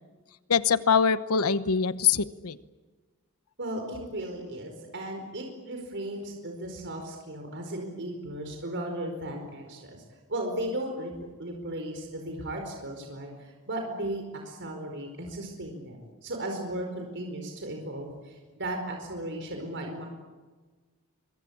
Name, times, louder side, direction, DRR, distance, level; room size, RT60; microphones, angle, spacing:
voice 1, 0.5-2.6, left 6 dB, 85° left, 14 dB, 1.0 m, -23 dB
voice 2, 3.6-10.0 10.3-11.1 11.4-20.1, right 1 dB, 55° right, 3 dB, 4.8 m, -36 dB
25.0 x 23.0 x 8.7 m, 1.3 s
head